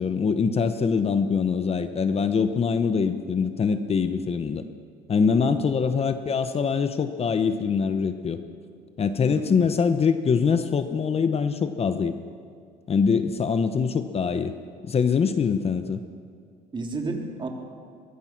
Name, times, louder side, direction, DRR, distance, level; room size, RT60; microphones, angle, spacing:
voice 1, 0.0-4.6 5.1-8.4 9.0-12.1 12.9-14.5 14.8-16.0, left 6 dB, 35° left, 10 dB, 1.1 m, -23 dB
voice 2, 5.3-5.6 9.3-9.6 16.7-17.5, right 3 dB, 30° right, 2 dB, 3.5 m, -32 dB
23.0 x 20.5 x 6.1 m, 2.3 s
cardioid pair, 110°, 17 cm